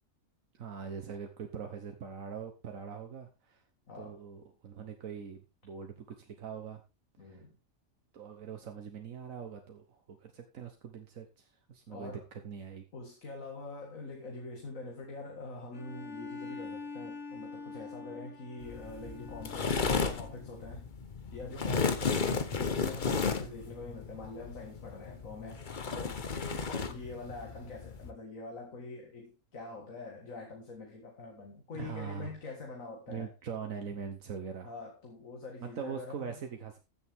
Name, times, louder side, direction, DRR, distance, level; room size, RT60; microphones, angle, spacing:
voice 1, 0.5-3.6 4.0-6.8 7.2-7.4 8.1-12.8 31.7-32.3 33.1-34.7 35.6-36.8, right 7 dB, 80° right, 1.6 m, -42 dB
voice 2, 3.9-4.2 7.2-7.6 11.9-12.2 12.9-20.9 21.3-25.6 25.9-33.3 34.6-36.4, left 3 dB, 80° left, 2.3 m, -44 dB
Bowed string instrument, 15.7-20.4, left 4 dB, 60° left, 1.8 m, -45 dB
sound 1, 18.6-28.1, left 5 dB, 40° left, 1.1 m, -34 dB
14.5 x 7.0 x 3.6 m
omnidirectional pair, 1.4 m